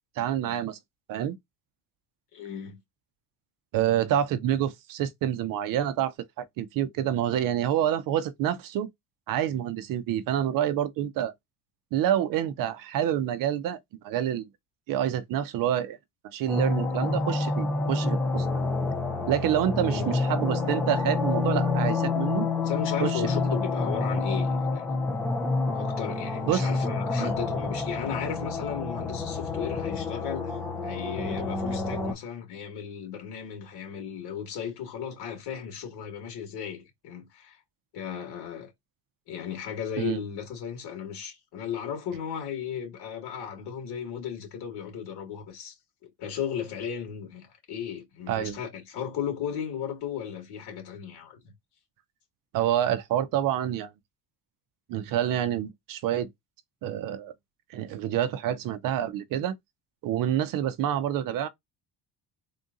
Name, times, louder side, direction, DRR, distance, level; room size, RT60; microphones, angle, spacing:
voice 1, 0.2-0.8 1.1-1.4 3.7-8.9 9.3-11.3 11.9-13.8 14.0-14.5 14.9-16.0 16.3-18.5 19.3-22.5 23.0-23.2 26.5-26.7 27.2-27.3 40.0-40.2 48.3-48.6 52.5-53.9 54.9-56.3 56.8-57.3 57.7-59.5 60.0-61.5, right 11 dB, 55° right, 0.5 m, -27 dB
voice 2, 2.3-2.8 19.9-20.2 22.6-24.9 25.7-37.6 37.9-38.7 39.3-45.7 46.2-51.4, left 8 dB, 70° left, 2.2 m, -35 dB
sound 1, 16.5-32.1, left 3 dB, 5° left, 0.5 m, -28 dB
3.7 x 2.6 x 3.7 m
cardioid pair, 175°, 41 cm